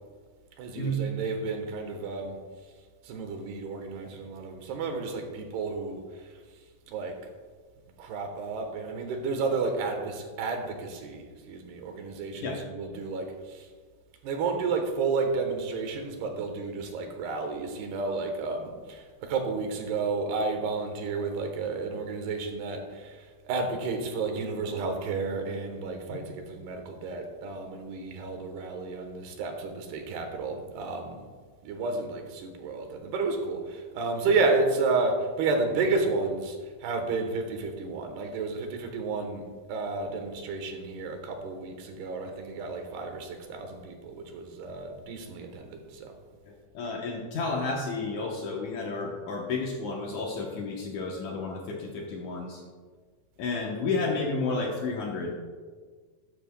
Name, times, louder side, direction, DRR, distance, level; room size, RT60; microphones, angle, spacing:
voice 1, 0.6-2.4 3.0-7.2 8.0-13.7 14.2-31.2 31.6-46.1 48.2-48.3, right 4 dB, 85° right, 4 dB, 3.2 m, -31 dB
voice 2, 46.4-52.6 53.4-55.4, left 3 dB, 70° left, -1 dB, 1.9 m, -31 dB
13.0 x 12.5 x 2.2 m, 1.5 s
omnidirectional pair, 4.5 m